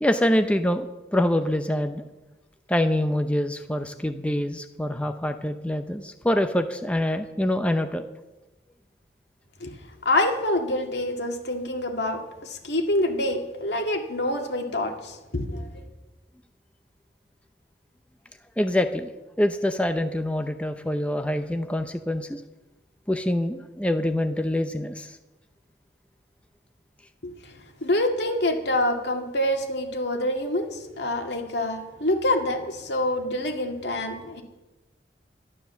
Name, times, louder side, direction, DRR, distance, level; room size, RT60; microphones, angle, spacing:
voice 1, 0.0-2.1 2.7-8.0 18.6-19.1 19.4-22.4 23.1-25.2, left 1 dB, 5° left, 7 dB, 0.7 m, -25 dB
voice 2, 10.1-15.8 27.2-27.5 27.8-34.4, left 1 dB, 80° left, 3 dB, 2.1 m, -26 dB
12.0 x 12.0 x 6.9 m, 1.1 s
head